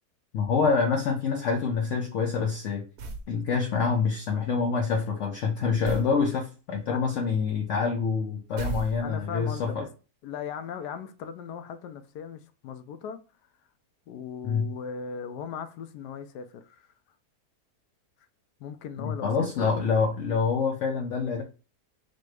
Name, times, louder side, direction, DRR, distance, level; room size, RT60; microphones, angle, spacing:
voice 1, 0.3-2.9 3.3-9.8 14.4-14.7 19.0-21.4, left 5 dB, 65° left, 0.8 m, -26 dB
sound 1, 3.0-3.3 5.8-6.2 8.6-9.4, right 3 dB, 75° right, 1.2 m, -35 dB
voice 2, 9.0-9.9 10.2-13.2 14.1-16.9 18.6-20.2, left 7 dB, 90° left, 1.2 m, -38 dB
4.2 x 2.2 x 4.6 m
omnidirectional pair, 1.7 m